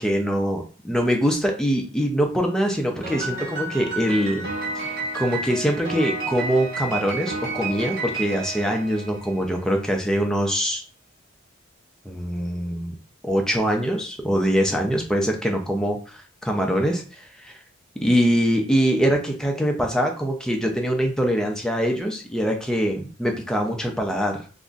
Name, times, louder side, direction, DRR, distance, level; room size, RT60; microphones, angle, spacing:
voice 1, 0.0-4.4 4.8-10.8 12.1-13.0 13.2-17.6 18.0-24.4, equal, 5° left, 2 dB, 0.4 m, -23 dB
Piano, 3.0-9.5, right 3 dB, 50° right, 1.5 m, -31 dB
2.5 x 2.1 x 3.7 m, 0.39 s
head